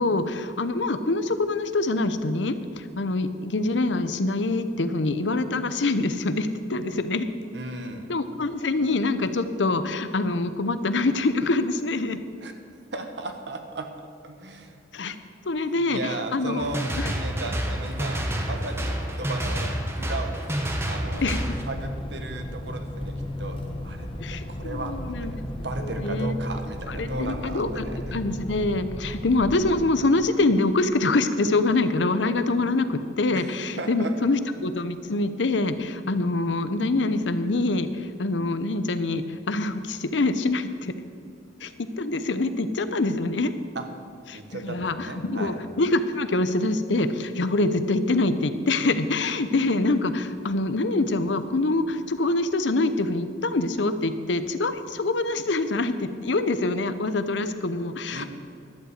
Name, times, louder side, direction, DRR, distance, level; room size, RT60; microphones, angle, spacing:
voice 1, 0.0-7.3 8.1-12.2 14.9-15.2 15.4-16.7 17.0-17.1 21.2-21.4 24.2-25.3 25.8-26.4 26.9-40.9 41.6-43.5 44.3-58.2, left 2 dB, 85° left, 11 dB, 0.8 m, -25 dB
voice 2, 7.5-8.1 12.4-12.5 12.9-13.9 14.2-14.8 15.8-16.8 17.1-19.7 20.0-23.1 23.4-25.4 25.6-28.2 33.3-33.5 33.8-34.1 43.7-43.8 44.3-45.6 58.1-58.2, right 2 dB, 70° right, 5 dB, 1.3 m, -36 dB
sound 1, 16.6-21.6, equal, 15° right, 1.1 m, -28 dB
sound 2, 21.2-29.8, equal, 30° left, 1.1 m, -34 dB
11.5 x 7.9 x 8.1 m, 2.3 s
head